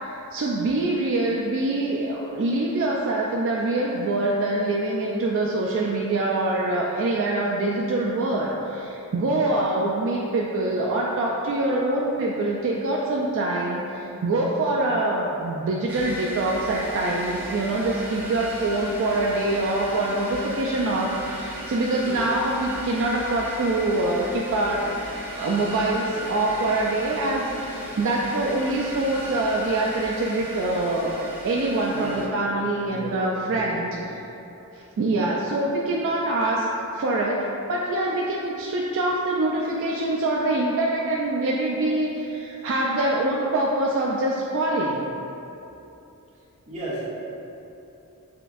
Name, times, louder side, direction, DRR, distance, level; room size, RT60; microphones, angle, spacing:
voice 1, 0.0-24.8 25.4-31.1 31.4-33.9 34.7-36.7 36.9-45.1, right 2 dB, 60° right, -3 dB, 0.3 m, -24 dB
sound 1, 15.9-32.3, equal, 10° right, 0.6 m, -36 dB
voice 2, 31.9-33.2 33.4-34.0 46.7-47.0, right 1 dB, 30° right, -8 dB, 1.1 m, -35 dB
6.6 x 2.4 x 2.5 m, 2.9 s
head